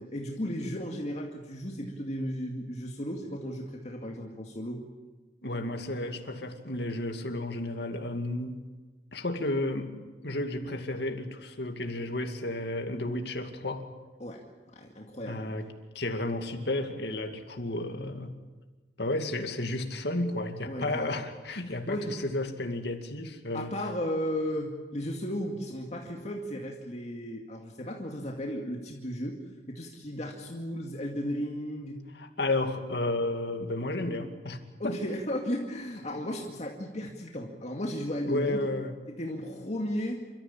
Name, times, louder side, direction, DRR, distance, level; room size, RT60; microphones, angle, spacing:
voice 1, 0.0-4.8 14.2-14.4 14.8-15.4 20.7-21.2 21.5-22.1 23.5-29.4 29.7-32.0 33.6-33.7 34.8-38.6 39.1-40.2, equal, 40° left, 0 dB, 2.3 m, -35 dB
voice 2, 5.4-8.7 9.1-10.0 10.2-13.9 15.3-15.7 15.9-18.4 19.0-23.7 32.2-34.6 34.8-35.0 38.2-39.0, left 2 dB, 65° left, 5 dB, 2.4 m, -32 dB
28.5 x 14.0 x 8.9 m, 1.3 s
head